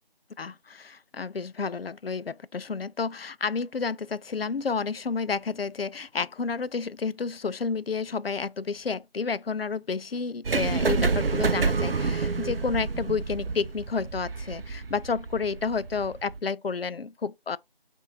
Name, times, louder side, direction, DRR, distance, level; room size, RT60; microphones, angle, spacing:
voice 1, 0.4-17.6, left 5 dB, 75° left, 0.5 m, -30 dB
sound 1, 10.4-16.4, right 4 dB, 70° right, 0.5 m, -28 dB
6.3 x 2.6 x 2.7 m
figure-of-eight pair, 175°, 30 cm